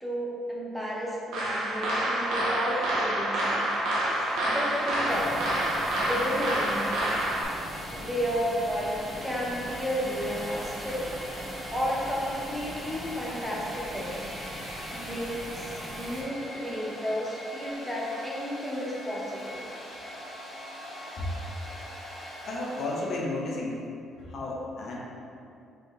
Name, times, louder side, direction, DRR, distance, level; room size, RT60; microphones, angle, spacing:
voice 1, 0.0-3.7 4.1-5.4 6.0-7.0 7.9-11.1 11.7-14.2 14.9-19.6, equal, 5° right, -5 dB, 0.7 m, -32 dB
sound 1, 1.3-7.4, right 1 dB, 80° right, 0.8 m, -28 dB
Domestic sounds home sounds, 3.6-23.2, equal, 20° left, 1.2 m, -42 dB
sound 2, 5.1-16.2, equal, 25° right, 1.4 m, -41 dB
voice 2, 22.4-23.8 24.2-25.0, left 2 dB, 55° left, -3 dB, 0.8 m, -33 dB
3.9 x 3.4 x 3.6 m, 2.5 s
cardioid pair, 125°, 0 cm